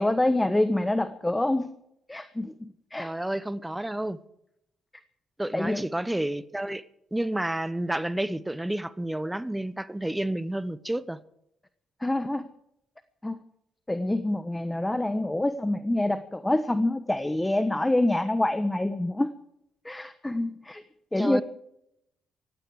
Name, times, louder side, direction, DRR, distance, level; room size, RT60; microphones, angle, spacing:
voice 1, 0.0-1.8 2.1-3.1 5.5-5.8 12.0-12.5 13.2-13.4 13.9-19.3 19.8-20.8 21.1-21.4, left 1 dB, 10° left, 1.1 m, -26 dB
voice 2, 3.0-4.2 5.4-6.8 7.1-11.2 21.2-21.4, right 1 dB, 10° right, 1.0 m, -30 dB
18.5 x 16.0 x 4.8 m
cardioid pair, 90°, 0 cm